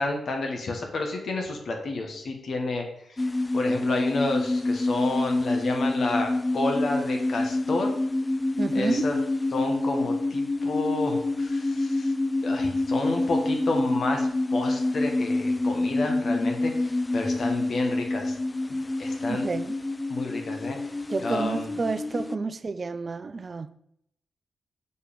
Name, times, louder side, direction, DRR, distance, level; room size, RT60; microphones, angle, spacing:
voice 1, 0.0-7.9 8.7-9.2 9.5-12.1 12.4-18.4 19.0-19.5 20.1-20.8 21.2-22.1, left 2 dB, 65° left, 2 dB, 1.2 m, -30 dB
sound 1, 3.2-22.4, left 2 dB, 25° left, 0.3 m, -27 dB
voice 2, 8.6-9.0 19.3-19.7 21.1-23.7, right 4 dB, 45° right, 13 dB, 0.4 m, -30 dB
5.4 x 4.4 x 5.1 m, 0.75 s
supercardioid pair, 50°, 0 cm